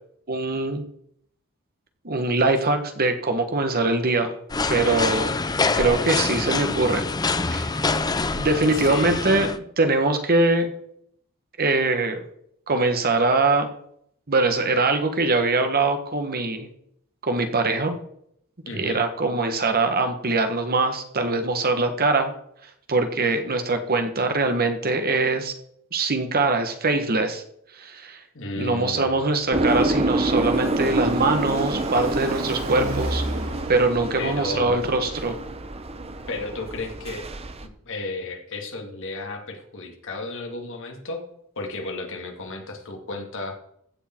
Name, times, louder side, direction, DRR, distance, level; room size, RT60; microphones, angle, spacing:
voice 1, 0.3-0.8 2.0-4.3 4.7-5.3 5.7-7.0 7.5-7.7 8.4-9.5 9.8-10.7 11.6-12.2 12.7-13.7 14.3-16.7 17.2-18.0 18.7-22.3 22.9-25.5 25.9-27.4 27.8-28.2 28.6-33.2 33.7-35.4, right 3 dB, 45° right, 7 dB, 1.5 m, -22 dB
sound 1, 4.5-9.6, left 3 dB, 20° left, 0.5 m, -25 dB
voice 2, 8.7-9.2 18.6-19.0 28.3-29.2 34.2-34.8 36.3-37.2 37.6-41.2 41.6-43.5, left 2 dB, 60° left, 3 dB, 2.2 m, -33 dB
Car passing by, 29.2-34.7, right 1 dB, 65° right, 4.2 m, -34 dB
sound 2, 29.5-37.6, right 2 dB, 30° right, 0.8 m, -27 dB
15.0 x 6.7 x 4.6 m, 0.70 s
head